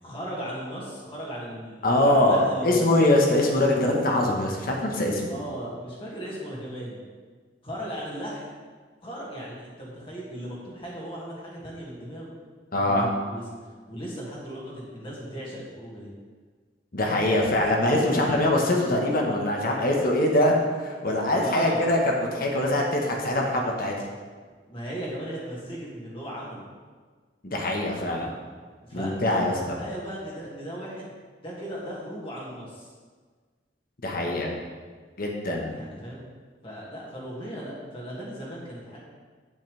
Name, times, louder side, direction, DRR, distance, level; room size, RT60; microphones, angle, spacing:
voice 1, 0.0-3.1 5.3-7.0 7.6-8.5 9.0-12.3 12.7-13.4 13.9-16.1 21.4-21.9 24.5-26.6 28.8-31.1 31.4-32.9 35.6-36.3 36.6-39.0, equal, 30° left, -6 dB, 2.3 m, -37 dB
voice 2, 1.8-5.4 12.7-13.1 16.9-23.9 27.4-28.3 28.9-29.5 34.0-34.5 35.2-35.8, left 1 dB, 55° left, 0 dB, 1.3 m, -23 dB
8.6 x 7.1 x 3.4 m, 1.5 s
head